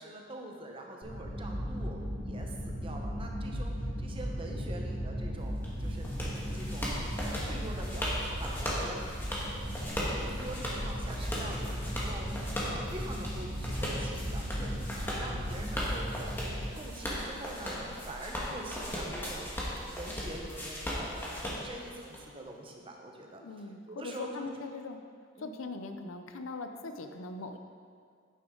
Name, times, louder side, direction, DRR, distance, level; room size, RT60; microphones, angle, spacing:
voice 1, 0.0-2.0 2.2-6.1 6.4-9.0 10.0-16.3 16.8-24.5 25.4-25.6, right 1 dB, 25° right, 1 dB, 1.0 m, -45 dB
sound 1, 1.0-16.6, equal, 35° left, 2.7 m, -36 dB
sound 2, 5.6-22.2, equal, 10° left, 1.4 m, -38 dB
voice 2, 23.4-25.0 25.4-27.6, left 3 dB, 90° left, 7 dB, 0.6 m, -40 dB
9.2 x 8.8 x 3.8 m, 2.1 s
head